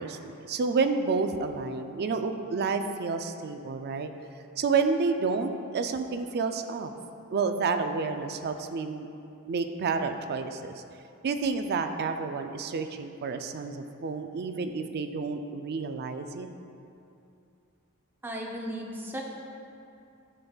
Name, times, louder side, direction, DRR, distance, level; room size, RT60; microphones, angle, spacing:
voice 1, 0.0-4.1 4.6-6.9 7.3-9.1 9.5-10.8 11.2-16.5, right 4 dB, 45° right, 7 dB, 0.4 m, -30 dB
voice 2, 18.2-19.2, equal, 10° right, -1 dB, 0.7 m, -35 dB
11.5 x 5.3 x 2.3 m, 2.7 s
head